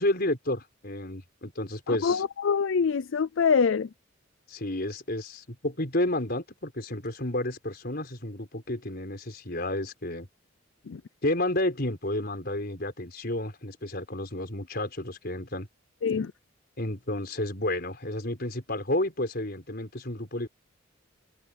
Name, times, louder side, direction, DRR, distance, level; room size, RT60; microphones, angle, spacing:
voice 1, 0.0-2.2 4.5-10.3 11.2-15.7 16.8-20.5, left 1 dB, 50° left, 4.7 m, -31 dB
voice 2, 1.9-3.9 10.9-11.0 16.0-16.3, left 6 dB, 70° left, 0.4 m, -25 dB
head